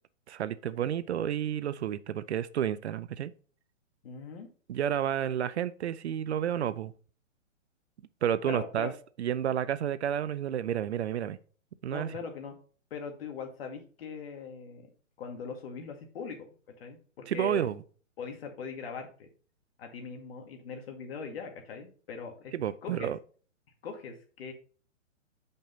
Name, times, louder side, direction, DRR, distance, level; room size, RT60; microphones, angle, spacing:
voice 1, 0.3-3.3 4.7-6.9 8.2-8.9 9.2-11.4 11.8-12.1 17.3-17.8 22.5-23.2, right 10 dB, 60° right, 0.6 m, -30 dB
voice 2, 4.0-4.5 8.5-8.9 11.9-12.6 12.9-14.9 15.2-16.4 16.8-17.7 18.2-19.3 19.8-22.5 22.8-23.1 23.8-24.5, left 5 dB, 50° left, 2.0 m, -40 dB
7.4 x 5.4 x 3.8 m
hypercardioid pair, 150°, 38 cm